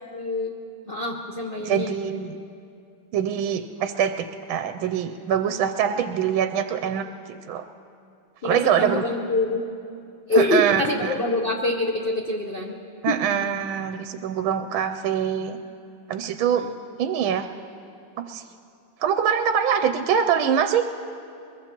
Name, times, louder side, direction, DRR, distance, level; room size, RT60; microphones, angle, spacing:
voice 1, 0.1-0.5 0.9-2.0 8.4-9.6 10.3-12.7 13.1-13.2 16.5-16.7, left 2 dB, 50° left, 0 dB, 0.6 m, -25 dB
voice 2, 1.6-2.4 3.1-7.1 7.5-7.6 8.4-9.0 10.3-11.1 13.0-15.6 16.1-16.7 17.0-17.5 18.3-18.4 19.0-20.8, right 8 dB, 80° right, 8 dB, 1.3 m, -24 dB
22.5 x 22.0 x 2.9 m, 2.5 s
omnidirectional pair, 2.3 m